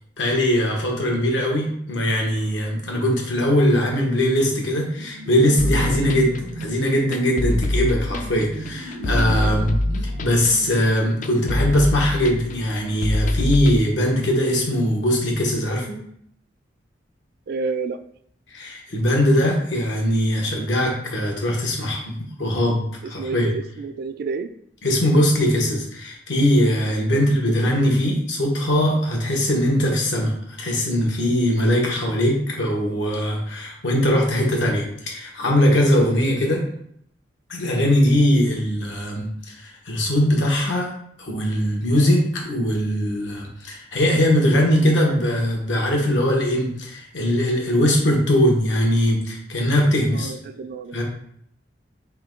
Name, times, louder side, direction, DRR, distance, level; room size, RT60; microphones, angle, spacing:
voice 1, 0.2-16.0 18.5-23.5 24.8-36.6 37.5-40.9 41.2-50.3 50.9-51.0, equal, 85° left, -1 dB, 1.1 m, -21 dB
sound 1, 4.7-6.8 7.5-10.7, right 2 dB, 80° right, 0.7 m, -35 dB
sound 2, 5.6-13.8, left 1 dB, 45° left, 0.3 m, -25 dB
voice 2, 17.5-18.0 23.2-24.5 27.1-27.2 27.6-27.7 50.1-51.0, right 4 dB, 60° right, 10 dB, 0.3 m, -30 dB
3.6 x 3.1 x 3.7 m, 0.69 s
head